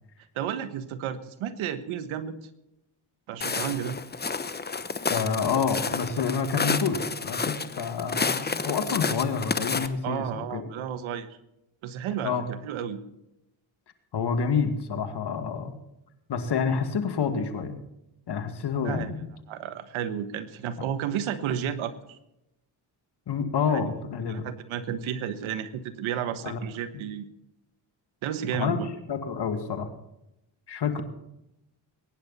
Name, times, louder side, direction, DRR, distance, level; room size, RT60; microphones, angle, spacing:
voice 1, 0.3-2.4 3.3-4.0 10.0-11.4 11.8-13.0 18.8-19.1 19.5-22.2 23.7-23.8 24.3-27.3 28.2-28.9, right 9 dB, 90° right, 11 dB, 1.4 m, -32 dB
Walk footsteps, 3.4-9.9, left 4 dB, 20° left, 1.0 m, -30 dB
voice 2, 5.1-10.7 12.2-12.5 14.1-15.7 16.3-17.8 18.3-19.3 20.8-20.9 23.3-24.5 26.4-26.6 26.9-27.0 28.6-28.8 29.1-29.9 30.7-31.0, left 6 dB, 55° left, 7 dB, 2.3 m, -28 dB
22.5 x 10.5 x 4.2 m, 0.87 s
cardioid pair, 80°, 47 cm